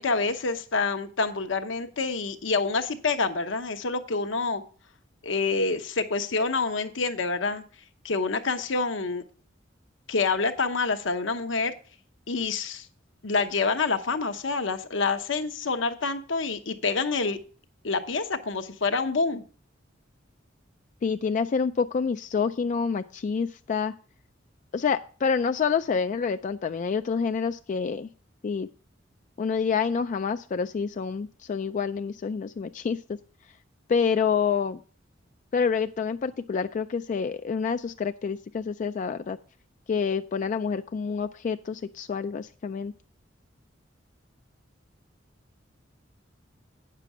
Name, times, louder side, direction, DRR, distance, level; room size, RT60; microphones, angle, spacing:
voice 1, 0.0-4.6 5.2-7.6 8.0-9.2 10.1-11.7 12.3-12.9 13.2-17.4 17.8-19.4, left 4 dB, 75° left, 0.9 m, -27 dB
voice 2, 21.0-23.9 24.7-28.1 28.4-28.7 29.4-33.0 33.9-34.8 35.5-39.4 39.9-42.9, left 6 dB, 40° left, 0.3 m, -27 dB
9.2 x 6.8 x 4.8 m
head